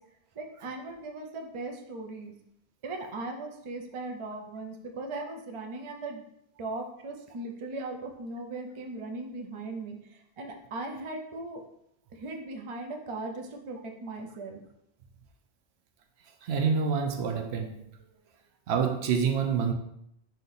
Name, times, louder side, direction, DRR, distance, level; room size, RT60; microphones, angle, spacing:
voice 1, 0.4-2.3 2.8-6.2 6.6-10.0 10.4-11.6 12.2-14.6, right 2 dB, 45° right, 3 dB, 0.4 m, -38 dB
voice 2, 16.4-17.8 18.7-19.7, right 6 dB, 75° right, 4 dB, 0.8 m, -27 dB
4.3 x 2.7 x 3.9 m, 0.76 s
omnidirectional pair, 1.2 m